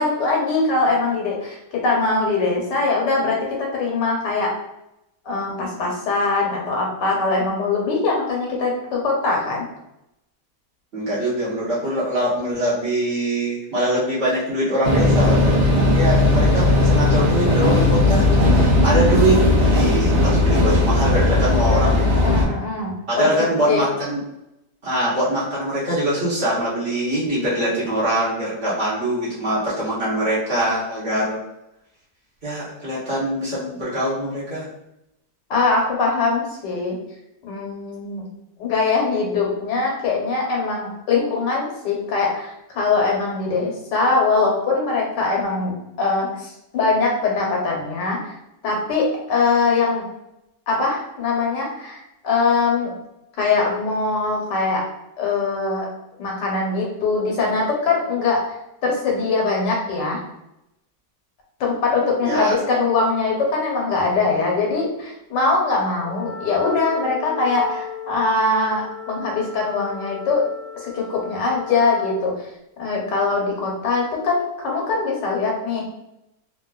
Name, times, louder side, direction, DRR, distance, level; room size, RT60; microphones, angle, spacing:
voice 1, 0.0-4.5 5.2-9.6 21.6-23.8 35.5-36.9 37.4-38.2 38.6-48.3 48.6-50.0 50.7-52.9 53.4-54.8 55.2-55.9 56.2-58.4 58.8-60.2 61.6-70.5 70.8-72.5 72.8-75.9, left 3 dB, 85° left, -2 dB, 1.5 m, -22 dB
voice 2, 10.9-18.3 18.5-22.1 23.1-24.2 24.8-31.4 32.4-34.7 62.2-62.5, right 1 dB, 45° right, -8 dB, 0.9 m, -23 dB
sound 1, 14.8-22.4, left 2 dB, 60° right, 0.5 m, -17 dB
Wind instrument woodwind instrument, 66.0-72.3, left 6 dB, 25° left, 0.4 m, -36 dB
3.2 x 2.5 x 2.3 m, 0.85 s
omnidirectional pair, 1.8 m